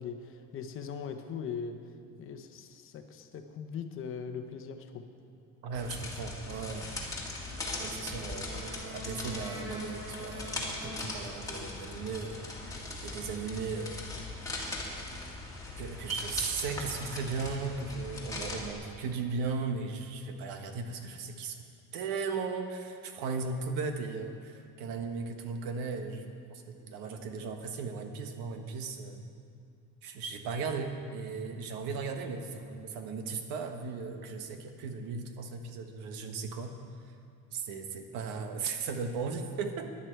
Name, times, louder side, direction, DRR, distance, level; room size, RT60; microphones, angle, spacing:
voice 1, 0.0-1.8 2.2-5.1, left 6 dB, 35° left, 7 dB, 0.8 m, -40 dB
voice 2, 5.6-6.9 7.8-12.5 13.0-14.1 15.8-21.6 21.9-29.2 30.0-36.8 37.0-37.1 37.5-40.0, right 4 dB, 80° right, 5 dB, 1.4 m, -37 dB
sound 1, 5.7-18.7, left 2 dB, 10° left, 1.7 m, -40 dB
Wind instrument woodwind instrument, 7.6-11.8, equal, 15° right, 2.5 m, -45 dB
16.5 x 11.0 x 4.6 m, 2.4 s
cardioid pair, 175°, 36 cm